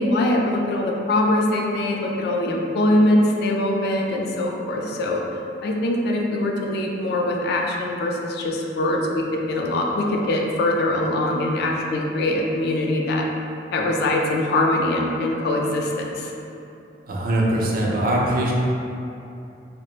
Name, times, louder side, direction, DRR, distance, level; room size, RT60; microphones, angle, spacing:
voice 1, 0.0-5.2 5.6-13.3 13.7-16.3, left 1 dB, 65° left, 0 dB, 0.3 m, -22 dB
voice 2, 17.1-18.5, right 1 dB, 55° right, -3 dB, 0.4 m, -22 dB
3.0 x 2.1 x 2.4 m, 2.7 s
head